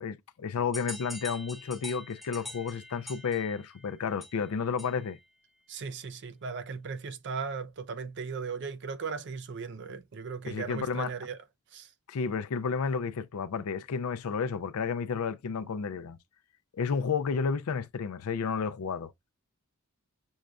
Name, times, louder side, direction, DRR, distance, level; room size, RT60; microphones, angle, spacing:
voice 1, 0.0-5.2 10.5-11.1 12.1-16.2 16.7-19.1, left 5 dB, 75° left, 0.4 m, -31 dB
sound 1, 0.7-5.2, left 1 dB, ahead, 0.7 m, -45 dB
voice 2, 5.7-11.4 11.7-11.9, right 5 dB, 50° right, 0.4 m, -37 dB
6.3 x 2.2 x 2.4 m
head